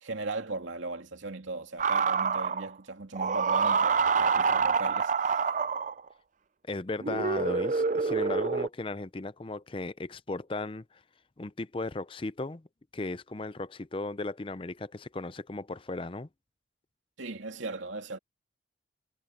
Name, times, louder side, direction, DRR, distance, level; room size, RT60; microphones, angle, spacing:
voice 1, 0.0-5.5 17.2-18.2, right 3 dB, 90° right, 2.6 m, -37 dB
sound 1, 1.8-2.7 3.2-6.1 7.0-8.7, right 5 dB, 40° right, 0.4 m, -27 dB
voice 2, 6.7-11.0 11.4-12.7 12.9-16.3, left 2 dB, 30° left, 0.5 m, -36 dB
head